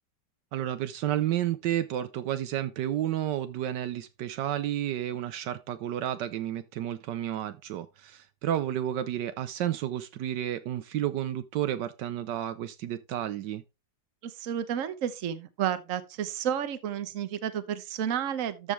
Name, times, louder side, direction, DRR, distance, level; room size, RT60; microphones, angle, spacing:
voice 1, 0.5-13.6, right 11 dB, 75° right, 1.3 m, -31 dB
voice 2, 14.2-18.7, right 9 dB, 55° right, 1.2 m, -31 dB
13.0 x 5.4 x 3.2 m
omnidirectional pair, 1.9 m